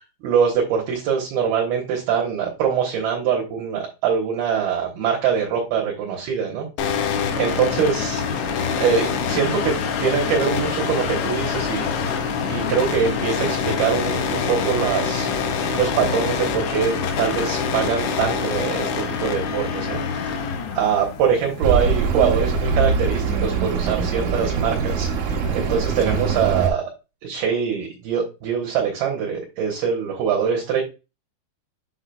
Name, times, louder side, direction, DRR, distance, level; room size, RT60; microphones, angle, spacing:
voice 1, 0.2-6.7 7.4-8.2 8.8-9.7 10.0-11.9 12.5-15.3 15.7-20.4 20.7-26.8 27.2-30.8, right 7 dB, 65° right, -1 dB, 2.9 m, -23 dB
sound 1, 6.8-22.8, left 6 dB, 80° left, 3.1 m, -25 dB
Accelerating revving vroom, 21.6-26.7, right 5 dB, 85° right, 1.7 m, -23 dB
7.7 x 5.9 x 2.3 m, 0.28 s
omnidirectional pair, 5.3 m